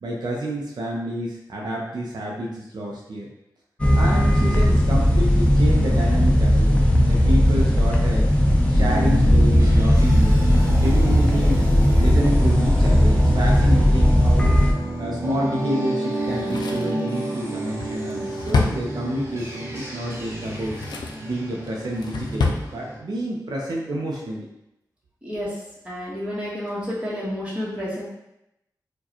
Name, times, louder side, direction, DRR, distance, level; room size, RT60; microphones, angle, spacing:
voice 1, 0.0-3.3 3.9-8.3 8.7-11.6 12.0-14.5 15.0-20.8 21.2-24.5, right 1 dB, 70° right, -2 dB, 0.6 m, -29 dB
sound 1, 3.8-14.7, equal, 15° left, 0.5 m, -17 dB
sound 2, 8.7-23.0, right 1 dB, 35° right, 0.8 m, -31 dB
Drawer open or close, 16.2-19.5 20.3-21.3 21.7-22.7 23.0-23.1, left 3 dB, 75° left, 0.4 m, -28 dB
voice 2, 25.2-25.5 25.8-28.0, equal, 15° right, -7 dB, 1.2 m, -30 dB
4.6 x 2.2 x 2.9 m, 0.86 s
wide cardioid pair, 135°, 7 cm